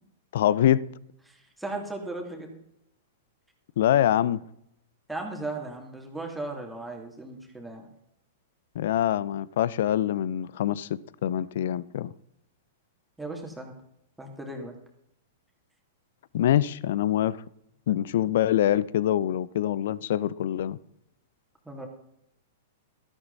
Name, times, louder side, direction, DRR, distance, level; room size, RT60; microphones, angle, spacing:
voice 1, 0.3-0.8 3.8-4.4 8.7-12.1 16.3-17.4 17.9-20.8, left 11 dB, 65° left, 0.6 m, -24 dB
voice 2, 1.3-2.5 5.1-7.9 13.2-13.7 14.2-14.7 21.6-21.9, right 2 dB, 5° right, 2.7 m, -36 dB
13.5 x 12.5 x 4.1 m
hypercardioid pair, 115°, 0 cm